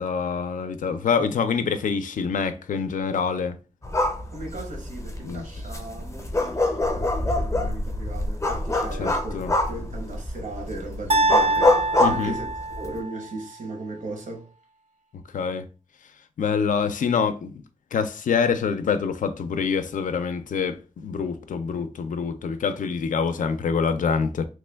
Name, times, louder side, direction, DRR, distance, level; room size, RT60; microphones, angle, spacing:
voice 1, 0.0-3.6 5.2-5.4 9.0-9.5 12.0-12.3 15.3-15.7 16.4-17.6 17.9-24.5, left 6 dB, 80° left, 0.4 m, -26 dB
sound 1, 3.8-13.0, left 2 dB, 25° left, 0.5 m, -25 dB
voice 2, 4.3-14.5, right 2 dB, 80° right, 0.8 m, -37 dB
sound 2, 11.1-13.2, right 2 dB, 45° right, 0.4 m, -24 dB
2.9 x 2.2 x 3.3 m
wide cardioid pair, 140°, 13 cm